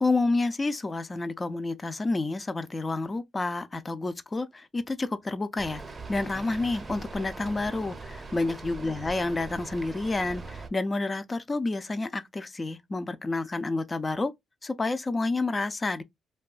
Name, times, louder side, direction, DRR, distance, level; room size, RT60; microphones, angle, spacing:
voice 1, 0.0-5.8 6.1-14.3 14.6-16.0, left 3 dB, 25° left, 0.4 m, -29 dB
Rain, 5.6-10.7, right 3 dB, 30° right, 0.7 m, -41 dB
2.6 x 2.3 x 2.3 m
cardioid pair, 90°, 0 cm